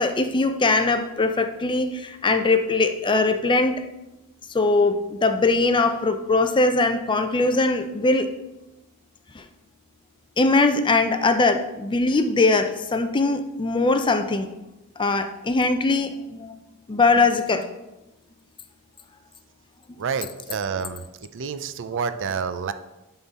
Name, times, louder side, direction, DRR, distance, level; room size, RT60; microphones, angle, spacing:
voice 1, 0.0-3.8 4.5-8.3 9.3-9.4 10.4-14.5 15.0-16.6 16.9-17.7, left 3 dB, 20° left, 8 dB, 0.4 m, -21 dB
voice 2, 20.0-22.7, right 6 dB, 55° right, 11 dB, 0.4 m, -29 dB
11.0 x 3.8 x 4.1 m, 0.98 s
head